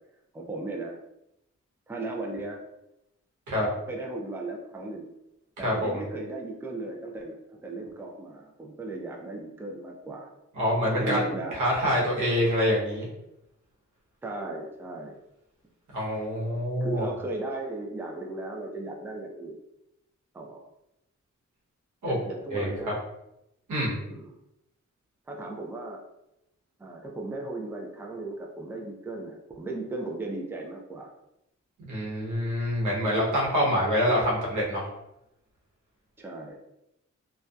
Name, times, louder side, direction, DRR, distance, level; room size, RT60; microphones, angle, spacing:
voice 1, 0.3-1.0 1.9-2.6 3.9-5.1 5.6-10.3 10.9-11.6 14.2-15.2 16.8-19.6 20.3-20.7 22.1-23.0 24.1-24.4 25.3-26.0 26.8-31.1 36.2-36.6, right 2 dB, 10° right, 0 dB, 0.4 m, -36 dB
voice 2, 5.6-6.0 10.6-11.3 11.5-13.1 15.9-17.1 22.0-22.2 22.5-22.7 23.7-24.0 31.9-34.9, equal, 90° right, -5 dB, 0.9 m, -26 dB
2.6 x 2.2 x 2.2 m, 0.86 s
cardioid pair, 75°, 29 cm